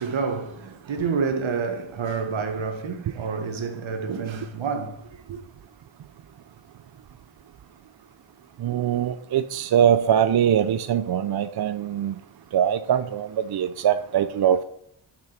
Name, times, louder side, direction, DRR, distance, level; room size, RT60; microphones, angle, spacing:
voice 1, 0.0-5.4, right 5 dB, 80° right, 1.3 m, -29 dB
voice 2, 8.6-12.2 12.5-14.6, right 9 dB, 55° right, 0.5 m, -22 dB
7.5 x 6.0 x 5.8 m
cardioid pair, 65°, 46 cm